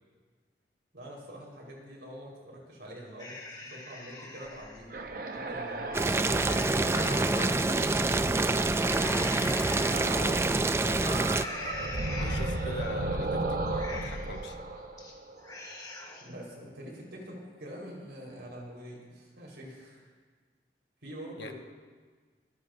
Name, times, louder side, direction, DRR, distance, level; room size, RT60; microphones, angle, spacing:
voice 1, 0.9-5.0 5.3-7.0 8.1-9.4 16.2-20.1 21.0-21.5, equal, 85° right, -3 dB, 4.5 m, -45 dB
sound 1, 3.2-4.8 5.3-5.4 5.9-7.7 8.7-10.0 10.4-10.8 11.3-12.8 13.2-13.3 13.7-14.4 14.8-15.1 15.4-16.3, left 2 dB, 20° left, 1.6 m, -42 dB
sound 2, 4.9-8.7 9.8-10.6 10.8-15.7, right 2 dB, 55° right, 0.9 m, -35 dB
Boiling, 5.9-11.4, right 2 dB, 15° right, 0.3 m, -26 dB
voice 2, 6.9-8.1 10.7-14.6 21.4-21.5, left 3 dB, 85° left, 5 dB, 1.0 m, -43 dB
24.0 x 14.5 x 2.7 m, 1.5 s
head